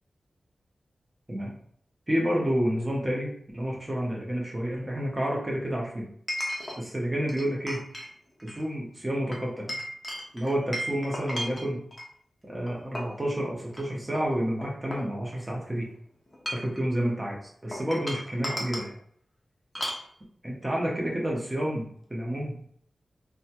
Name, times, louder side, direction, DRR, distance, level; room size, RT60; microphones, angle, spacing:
voice 1, 2.1-6.1 6.8-7.8 8.4-9.8 10.3-11.8 12.5-15.9 16.5-18.9 20.4-22.6, equal, 20° right, -3 dB, 0.9 m, -29 dB
Chink clink, 2.8-2.9 6.3-6.8 7.3-8.1 8.4-8.6 9.3-12.1 12.7-13.2 13.7-13.8 14.1-15.6 16.3-16.8 17.7-18.9 19.7-20.1, equal, 20° left, 0.7 m, -35 dB
2.7 x 2.3 x 2.8 m, 0.63 s
wide cardioid pair, 75°, 0 cm